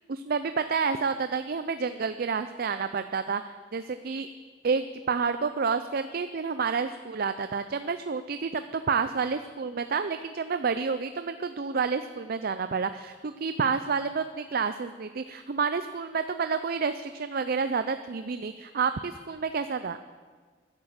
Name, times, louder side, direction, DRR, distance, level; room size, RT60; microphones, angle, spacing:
voice 1, 0.1-3.4 3.7-4.3 4.6-20.0, right 5 dB, 55° right, 10 dB, 0.5 m, -29 dB
13.0 x 11.0 x 7.5 m, 1.5 s
head